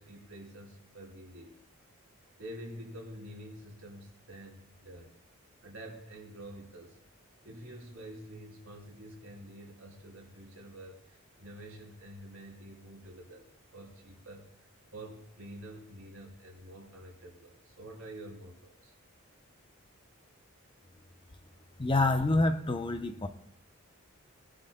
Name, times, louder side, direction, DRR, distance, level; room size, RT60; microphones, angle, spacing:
voice 1, 0.0-1.6 2.4-5.1 5.6-7.0 7.4-13.5 13.7-14.5 14.9-18.9, right 1 dB, 70° right, 3.2 m, -48 dB
voice 2, 21.8-23.3, left 2 dB, 25° left, 0.7 m, -27 dB
22.0 x 11.5 x 2.2 m
head